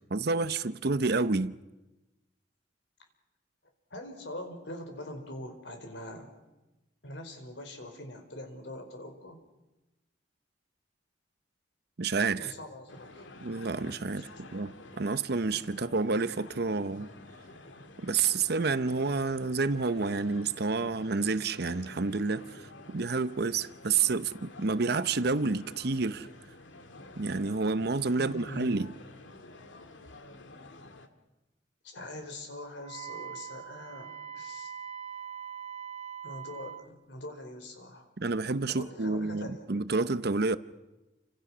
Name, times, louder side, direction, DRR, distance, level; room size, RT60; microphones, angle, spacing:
voice 1, 0.1-1.6 12.0-12.5 13.4-17.1 18.0-26.3 27.2-28.9 38.2-40.6, right 4 dB, 60° right, 0.8 m, -29 dB
voice 2, 3.9-6.3 7.0-9.4 12.4-13.3 14.2-14.4 28.1-28.8 31.8-34.7 36.2-38.1 38.7-39.7, left 1 dB, 70° left, 4.7 m, -43 dB
sound 1, 12.9-31.1, left 2 dB, 90° left, 2.1 m, -50 dB
Wind instrument woodwind instrument, 32.8-36.9, right 8 dB, 35° right, 1.0 m, -42 dB
29.5 x 26.0 x 6.2 m
head